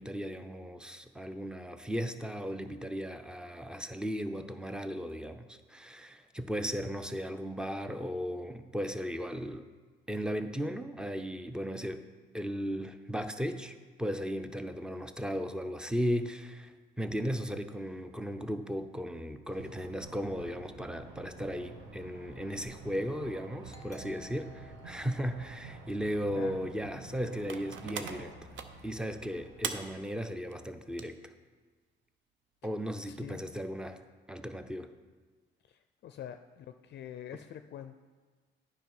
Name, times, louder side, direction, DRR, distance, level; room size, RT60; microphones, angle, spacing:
voice 1, 0.0-9.6 10.1-12.0 12.3-28.3 28.8-31.3 32.6-34.0 34.3-34.9, equal, 5° right, 9 dB, 0.5 m, -36 dB
sound 1, 19.5-29.9, right 3 dB, 90° right, 1.2 m, -49 dB
Doorbell, 23.7-27.1, equal, 15° left, 1.2 m, -57 dB
sound 2, 27.5-28.9 29.1-29.2 29.5-29.8 30.3-30.5 30.9-31.2 33.1-33.2, right 7 dB, 70° right, 0.7 m, -38 dB
voice 2, 33.0-33.6 35.7-38.0, left 10 dB, 60° left, 8 dB, 0.4 m, -46 dB
9.2 x 5.0 x 5.4 m, 1.4 s
cardioid pair, 90°, 20 cm